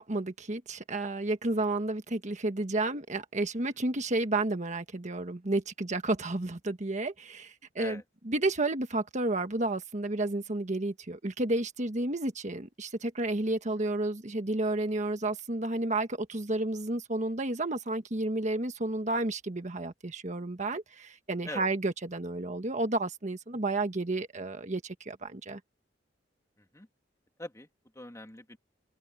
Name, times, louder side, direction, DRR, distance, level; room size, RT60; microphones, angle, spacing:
voice 1, 0.0-8.0 8.3-25.6, right 2 dB, 40° right, 1.4 m, -31 dB
voice 2, 26.6-26.9 27.4-27.7 27.9-28.6, left 1 dB, 15° left, 2.7 m, -43 dB
open air
head